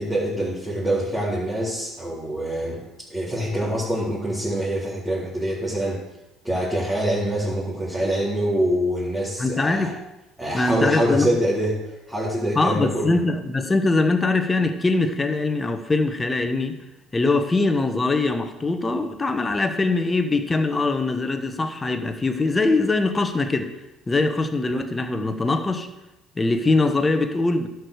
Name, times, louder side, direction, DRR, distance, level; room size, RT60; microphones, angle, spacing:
voice 1, 0.0-2.8 3.1-6.0 6.4-9.9 10.4-13.2, right 1 dB, 5° right, -8 dB, 3.7 m, -25 dB
voice 2, 9.4-10.0 10.5-11.3 12.5-16.8 17.1-23.7 24.1-25.9 26.4-27.7, left 3 dB, 20° left, 7 dB, 1.1 m, -22 dB
11.5 x 4.8 x 6.6 m, 0.98 s
hypercardioid pair, 65°, 0 cm